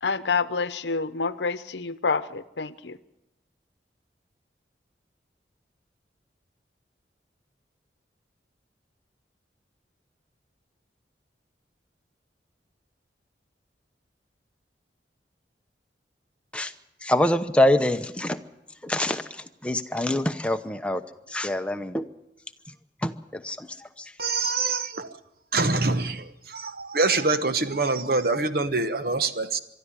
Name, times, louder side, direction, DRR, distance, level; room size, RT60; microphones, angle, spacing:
voice 1, 0.0-3.0, left 4 dB, 80° left, 0.8 m, -28 dB
voice 2, 17.0-18.4 18.8-21.0 21.3-22.0 23.0-23.7 24.0-24.1, left 1 dB, 5° left, 0.8 m, -25 dB
voice 3, 24.2-25.1 25.5-29.6, right 3 dB, 55° right, 1.1 m, -25 dB
23.0 x 13.0 x 9.8 m
head